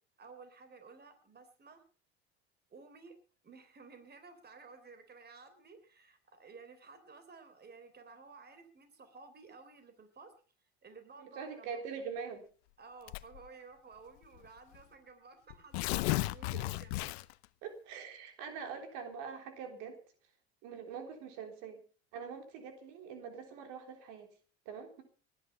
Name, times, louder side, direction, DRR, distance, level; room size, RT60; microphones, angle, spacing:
voice 1, 0.2-1.8 2.7-3.1 3.4-10.3 10.8-11.7 12.8-17.0, right 4 dB, 30° right, 10 dB, 3.6 m, -54 dB
voice 2, 11.2-12.4 16.5-16.6 17.6-20.0 20.6-21.8 22.1-24.3 24.7-25.0, right 6 dB, 70° right, 5 dB, 3.7 m, -44 dB
Tearing, 13.1-13.5 14.4-14.5 14.7-14.8 15.5-17.5, left 20 dB, 80° left, 0.8 m, -34 dB
19.5 x 10.5 x 5.5 m, 0.41 s
hypercardioid pair, 85°, 32 cm